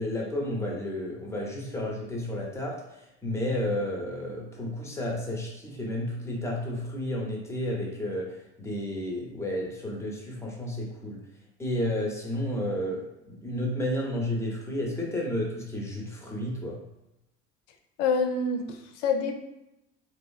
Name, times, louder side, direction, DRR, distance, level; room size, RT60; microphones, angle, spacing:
voice 1, 0.0-11.2 11.6-16.8, left 1 dB, 10° left, -2 dB, 0.7 m, -32 dB
voice 2, 18.0-19.4, left 4 dB, 70° left, 6 dB, 0.5 m, -27 dB
2.9 x 2.0 x 2.3 m, 0.89 s
hypercardioid pair, 70°, 37 cm